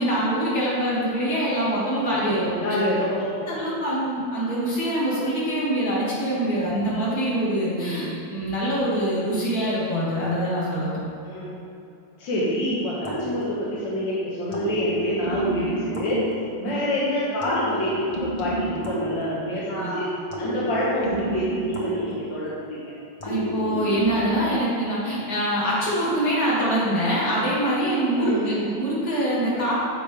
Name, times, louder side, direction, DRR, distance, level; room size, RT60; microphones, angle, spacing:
voice 1, 0.0-2.5 3.5-11.1 16.1-16.2 16.6-16.7 19.7-20.1 23.2-29.7, right 1 dB, 55° left, -8 dB, 2.8 m, -24 dB
voice 2, 2.2-3.5 6.4-6.5 7.7-8.2 11.2-11.6 12.2-16.2 16.6-22.9 28.2-28.7, equal, 80° left, -7 dB, 1.8 m, -27 dB
sound 1, 13.0-14.0 14.5-16.9 17.4-19.8 20.3-22.7 23.2-24.7, right 1 dB, 25° left, 0.9 m, -30 dB
9.6 x 7.1 x 3.3 m, 2.7 s
omnidirectional pair, 2.0 m